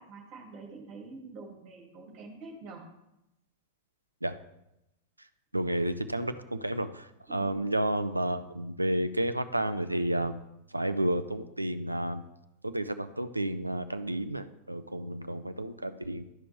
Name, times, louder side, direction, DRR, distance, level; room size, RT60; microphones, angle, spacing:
voice 1, 0.0-2.8 7.3-7.5, right 3 dB, 40° right, 0 dB, 2.4 m, -46 dB
voice 2, 5.5-10.4 10.7-12.2 12.6-16.2, right 1 dB, 85° right, 12 dB, 0.4 m, -31 dB
12.0 x 5.0 x 3.3 m, 0.88 s
figure-of-eight pair, 90°, 0 cm